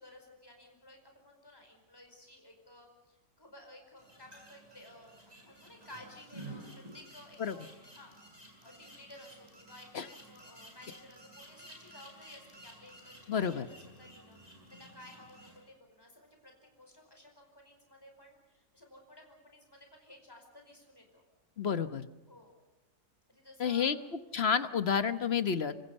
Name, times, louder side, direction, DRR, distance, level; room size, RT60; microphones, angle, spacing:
voice 1, 0.0-14.4 14.7-21.2 22.3-22.6 23.3-24.1, left 1 dB, 15° left, 2 dB, 5.0 m, -55 dB
sound 1, 4.0-15.6, right 1 dB, 25° right, 7.3 m, -53 dB
voice 2, 13.3-13.7 21.6-22.0 23.6-24.0 24.3-25.7, left 7 dB, 45° left, 11 dB, 1.2 m, -30 dB
26.0 x 25.5 x 5.4 m, 1.1 s
omnidirectional pair, 1.7 m